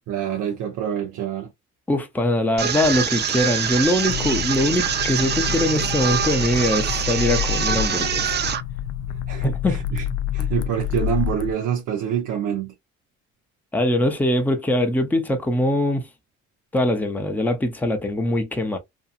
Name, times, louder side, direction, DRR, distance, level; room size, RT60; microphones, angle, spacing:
voice 1, 0.1-1.5 9.3-10.0 10.3-12.7, right 9 dB, 80° right, 0.6 m, -26 dB
voice 2, 1.9-8.4 9.4-9.9 13.7-16.1 16.7-18.8, left 1 dB, 5° left, 0.6 m, -22 dB
sound 1, 2.6-8.6, right 8 dB, 35° right, 0.4 m, -24 dB
sound 2, 4.1-11.5, left 11 dB, 75° left, 0.5 m, -28 dB
2.8 x 2.4 x 2.4 m
cardioid pair, 90°, 30 cm